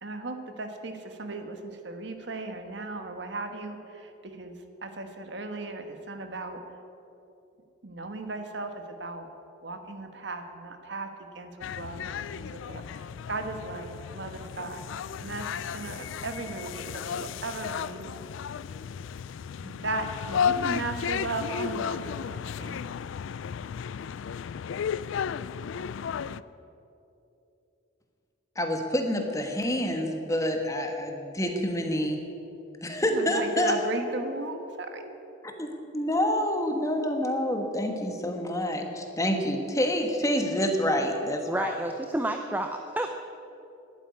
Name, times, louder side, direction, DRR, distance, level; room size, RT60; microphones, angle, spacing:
voice 1, 0.0-6.6 7.8-8.7 9.0-9.3 9.6-14.9 15.2-18.0 19.6-22.9 33.1-35.1, right 2 dB, 60° right, 6 dB, 1.3 m, -36 dB
Content warning, 11.6-26.4, left 7 dB, 70° left, 0.3 m, -34 dB
voice 2, 28.6-32.2 32.8-33.7 35.6-41.7, equal, 15° left, 4 dB, 1.3 m, -27 dB
voice 3, 41.5-43.1, right 1 dB, 10° right, 5 dB, 0.5 m, -30 dB
12.0 x 9.0 x 9.5 m, 2.8 s
head